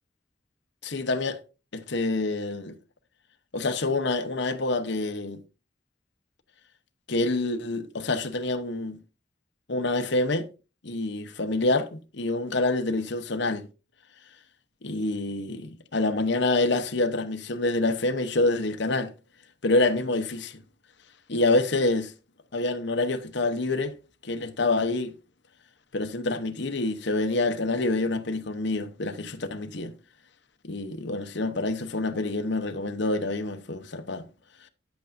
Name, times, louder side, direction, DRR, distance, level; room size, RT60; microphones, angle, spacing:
voice 1, 0.8-1.4 1.7-2.7 3.5-5.4 7.1-9.0 9.7-10.5 10.8-13.7 14.8-19.1 19.6-20.6 21.3-22.1 22.5-23.9 24.2-25.1 25.9-29.9 30.6-34.2, left 2 dB, 65° left, 1.0 m, -27 dB
10.5 x 8.1 x 2.6 m
head